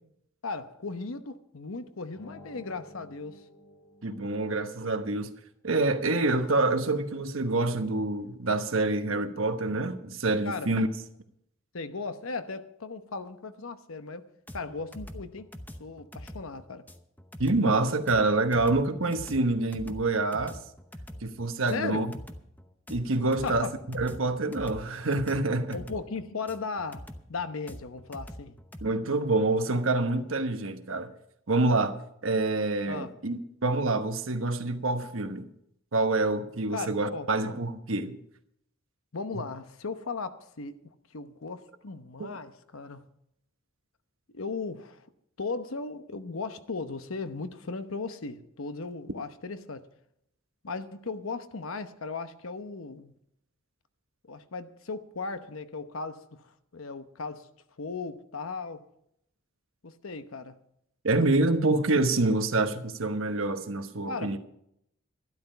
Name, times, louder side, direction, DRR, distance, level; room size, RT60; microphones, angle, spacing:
voice 1, 0.4-3.4 10.4-10.7 11.7-14.2 14.5-15.5 15.8-16.9 21.7-22.1 23.4-23.7 25.7-28.5 32.8-33.1 36.7-37.3 39.1-40.8 41.1-43.1 44.3-45.1 45.4-49.9 50.6-53.1 54.3-57.5 57.8-58.8 59.8-60.6 64.1-64.4, left 4 dB, 75° left, 1.0 m, -37 dB
sound 1, 2.1-4.8, left 1 dB, 60° left, 5.7 m, -51 dB
voice 2, 4.0-5.3 5.6-10.9 17.4-20.6 21.2-22.1 22.9-25.8 28.8-31.1 31.5-31.9 32.2-35.5 35.9-38.2 39.3-39.4 42.2-42.3 61.0-64.4, right 2 dB, 70° right, 1.1 m, -27 dB
sound 2, 14.5-28.9, equal, 10° left, 0.8 m, -44 dB
12.5 x 12.0 x 5.6 m
head